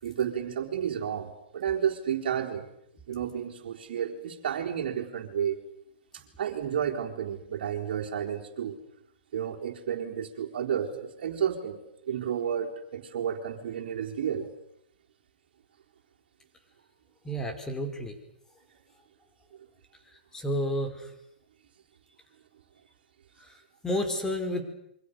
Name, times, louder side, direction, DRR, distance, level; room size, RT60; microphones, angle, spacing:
voice 1, 0.0-2.7 3.1-5.6 6.4-8.8 9.3-11.8 12.1-14.5, right 8 dB, 60° right, -3 dB, 4.0 m, -31 dB
voice 2, 17.2-18.2 20.3-21.1 23.4-24.6, equal, 10° left, 5 dB, 4.9 m, -31 dB
27.5 x 24.0 x 6.8 m, 0.77 s
hypercardioid pair, 125°, 6 cm